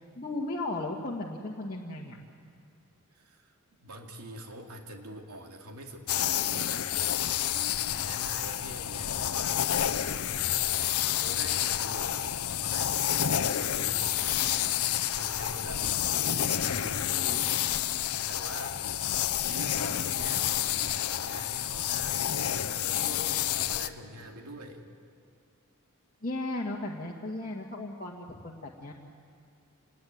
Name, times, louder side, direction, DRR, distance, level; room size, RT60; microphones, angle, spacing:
voice 1, 0.2-2.2 26.2-28.9, left 2 dB, 40° left, -3 dB, 1.9 m, -35 dB
voice 2, 3.1-3.5 3.8-6.8 7.3-9.7 11.0-14.7 15.1-17.9 18.3-18.9 19.4-24.9, equal, 85° right, 3 dB, 2.7 m, -45 dB
sound 1, 6.1-23.9, left 11 dB, 75° left, 0.8 m, -29 dB
26.5 x 20.0 x 9.5 m, 2.3 s
head